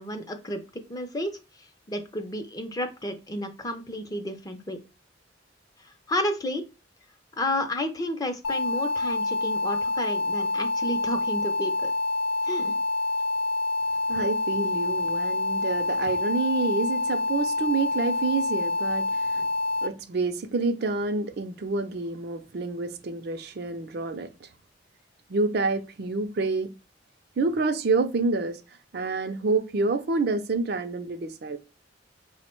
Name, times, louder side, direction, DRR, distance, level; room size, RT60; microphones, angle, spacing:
voice 1, 0.0-1.4 1.9-4.8 5.8-6.7 7.3-11.9 12.4-12.7, left 1 dB, 20° left, 0.5 m, -31 dB
sound 1, 8.4-19.9, left 2 dB, 80° left, 0.5 m, -27 dB
voice 2, 14.1-19.5 19.8-24.5 25.3-26.7 27.4-28.6 28.9-31.6, right 3 dB, 60° right, 0.5 m, -28 dB
4.4 x 2.1 x 4.3 m
head